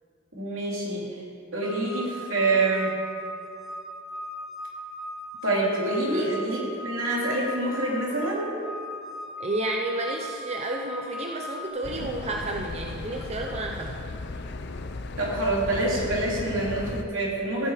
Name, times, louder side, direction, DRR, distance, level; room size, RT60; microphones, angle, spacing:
voice 1, 0.3-1.1 1.5-3.0 5.4-8.5 15.2-17.7, right 2 dB, 80° right, -4 dB, 3.1 m, -26 dB
sound 1, 1.6-11.7, left 1 dB, ahead, 0.7 m, -38 dB
voice 2, 9.4-13.9, right 2 dB, 35° right, 1 dB, 0.7 m, -31 dB
sound 2, 11.8-17.0, left 3 dB, 55° left, 0.6 m, -36 dB
14.5 x 8.8 x 5.0 m, 2.4 s
head